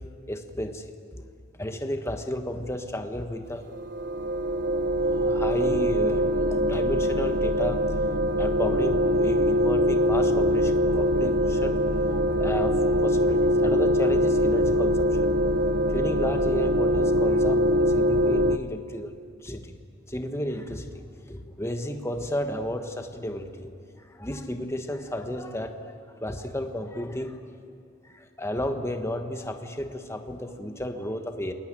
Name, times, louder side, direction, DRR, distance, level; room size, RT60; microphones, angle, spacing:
voice 1, 0.3-0.9 1.6-3.7 5.0-7.8 8.4-15.3 15.9-19.1 19.4-19.8 20.1-21.0 21.3-23.7 24.0-27.4 28.0-31.5, left 1 dB, 15° left, 5 dB, 1.4 m, -33 dB
sound 1, 3.7-18.6, equal, 40° right, 0.8 m, -23 dB
28.5 x 21.0 x 9.1 m, 2.4 s
head